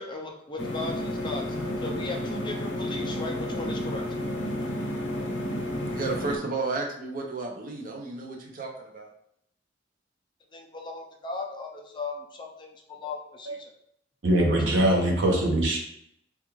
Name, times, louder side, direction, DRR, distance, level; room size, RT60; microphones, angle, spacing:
voice 1, 0.0-1.5 1.8-4.0 10.5-13.7 14.5-14.9, left 3 dB, 25° left, 1 dB, 0.4 m, -37 dB
sound 1, 0.6-6.4, left 1 dB, 85° left, 0.7 m, -31 dB
voice 2, 5.9-9.1, right 3 dB, 50° right, 1 dB, 0.6 m, -33 dB
voice 3, 14.2-15.8, right 1 dB, 75° right, 0 dB, 0.8 m, -22 dB
3.5 x 2.4 x 3.0 m, 0.73 s
head